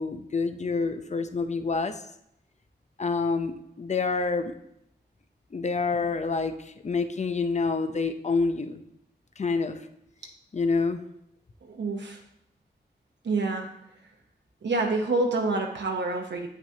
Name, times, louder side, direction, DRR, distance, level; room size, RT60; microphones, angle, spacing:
voice 1, 0.0-1.9 3.0-4.5 5.5-6.5 6.8-8.8 9.4-9.9 10.5-11.0, left 4 dB, 40° left, 8 dB, 0.6 m, -27 dB
voice 2, 11.7-12.2 13.2-13.7 14.6-16.5, right 3 dB, 85° right, 2 dB, 0.9 m, -27 dB
8.9 x 5.9 x 2.8 m, 0.78 s
wide cardioid pair, 80°, 18 cm